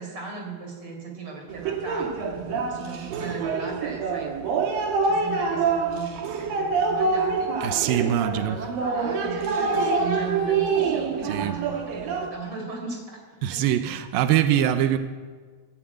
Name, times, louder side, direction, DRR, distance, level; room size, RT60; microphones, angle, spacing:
voice 1, 0.0-4.4 5.0-13.2 13.5-13.6, right 4 dB, 30° right, 1 dB, 5.4 m, -37 dB
sound 1, 1.5-12.3, right 4 dB, 60° right, 2.9 m, -26 dB
voice 2, 7.6-8.6 11.2-11.6 13.4-15.0, right 11 dB, 85° right, 8 dB, 2.0 m, -23 dB
26.0 x 15.5 x 9.1 m, 1.5 s
omnidirectional pair, 5.7 m